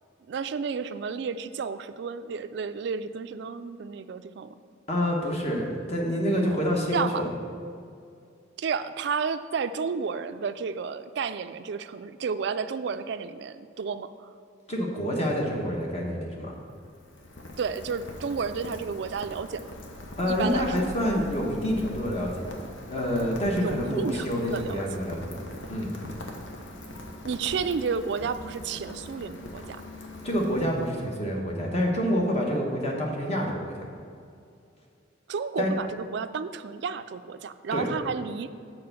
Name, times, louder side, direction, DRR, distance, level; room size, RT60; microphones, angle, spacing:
voice 1, 0.3-4.6 6.9-7.2 8.6-14.3 17.6-19.7 20.3-20.9 23.6-24.8 27.2-29.8 35.3-38.5, right 5 dB, 60° right, 11 dB, 0.3 m, -31 dB
voice 2, 4.9-7.3 14.7-16.5 20.2-22.5 22.9-25.2 25.7-25.9 30.2-33.9 35.6-35.7 37.7-37.9, equal, 35° left, -1 dB, 1.2 m, -27 dB
Rain, 16.5-31.2, left 1 dB, 80° left, 1.0 m, -42 dB
6.8 x 4.5 x 6.8 m, 2.4 s
head